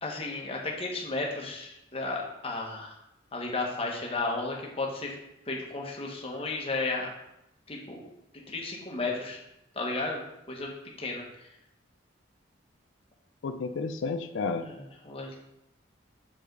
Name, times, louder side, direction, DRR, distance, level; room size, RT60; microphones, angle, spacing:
voice 1, 0.0-3.0 3.3-5.1 5.5-7.1 7.7-8.1 8.5-9.4 9.7-10.2 10.5-10.7 11.0-11.2 14.6-15.3, left 3 dB, 30° left, -1 dB, 1.2 m, -33 dB
voice 2, 13.4-14.7, left 4 dB, 65° left, 9 dB, 0.4 m, -31 dB
7.2 x 5.0 x 3.9 m, 0.84 s
head